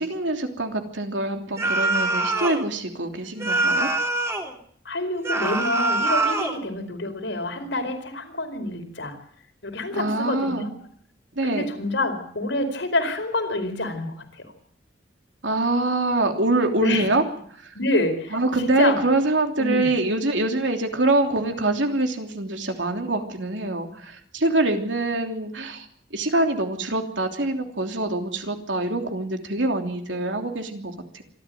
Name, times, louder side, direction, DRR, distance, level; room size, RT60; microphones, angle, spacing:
voice 1, 0.0-3.9 9.9-10.7 11.3-11.7 15.4-17.2 17.5-17.7 18.3-31.2, right 2 dB, 85° right, 4 dB, 3.2 m, -25 dB
sound 1, 1.6-2.6 3.4-4.5 5.2-6.6, right 2 dB, 15° right, 2.7 m, -24 dB
voice 2, 4.8-9.2 9.6-10.7 11.4-14.5 16.8-17.1 17.7-19.0 19.6-19.9, left 2 dB, 85° left, 5 dB, 4.7 m, -27 dB
26.5 x 12.5 x 9.3 m, 0.63 s
head